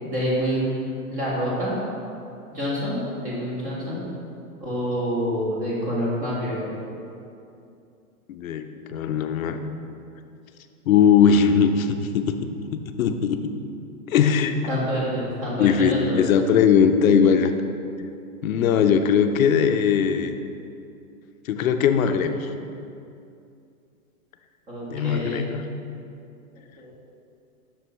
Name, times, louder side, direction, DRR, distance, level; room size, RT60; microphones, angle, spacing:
voice 1, 0.0-0.8 1.1-1.8 2.5-4.0 4.6-6.7 14.7-16.2 24.7-25.4 26.8-26.9, equal, 15° right, -6 dB, 1.5 m, -27 dB
voice 2, 8.3-9.6 10.9-12.3 12.7-13.4 14.1-14.6 15.6-17.5 18.4-20.3 21.5-22.5 24.9-25.6, left 7 dB, 65° left, 8 dB, 0.6 m, -20 dB
7.8 x 6.5 x 3.1 m, 2.6 s
hypercardioid pair, 160°, 45 cm